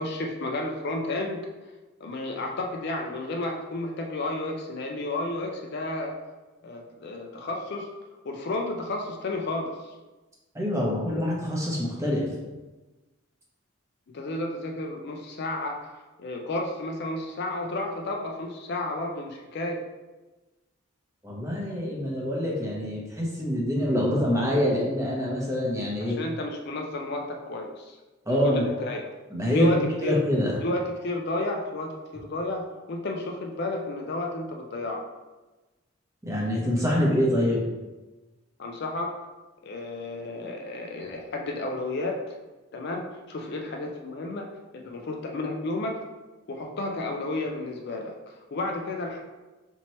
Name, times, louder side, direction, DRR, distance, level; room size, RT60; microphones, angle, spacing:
voice 1, 0.0-1.5 2.0-6.2 6.6-7.9 8.2-9.9 14.1-15.9 16.2-19.8 26.0-28.0 28.3-29.1 29.5-30.2 30.6-35.0 38.6-39.2 39.6-42.2 42.7-46.0 46.5-49.2, left 2 dB, 50° left, 2 dB, 0.4 m, -32 dB
voice 2, 10.5-12.3 21.2-26.2 28.3-28.6 29.3-30.6 36.3-37.6, left 1 dB, 15° right, -3 dB, 0.8 m, -25 dB
4.3 x 2.9 x 3.0 m, 1.2 s
head